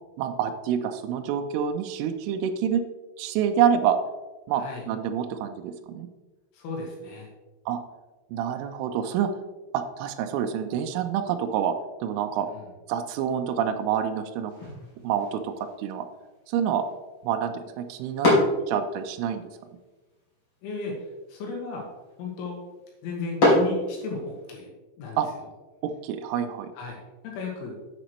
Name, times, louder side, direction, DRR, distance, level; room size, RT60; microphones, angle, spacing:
voice 1, 0.2-2.9 3.2-4.0 4.5-6.1 7.7-7.8 8.3-9.3 9.7-11.8 12.0-12.5 12.9-14.5 15.0-16.1 16.5-16.8 17.2-18.4 18.7-19.4 25.2-25.3 25.8-26.7, right 8 dB, 80° right, 6 dB, 2.9 m, -27 dB
voice 2, 4.5-4.8 6.5-7.3 12.5-12.7 20.6-21.9 22.2-22.6 23.0-24.7 25.0-25.2 26.7-27.0 27.2-27.8, left 4 dB, 75° left, -1 dB, 3.3 m, -35 dB
sound 1, 14.5-24.5, left 1 dB, 30° left, 3.4 m, -30 dB
10.0 x 7.9 x 3.1 m, 1.2 s
omnidirectional pair, 5.9 m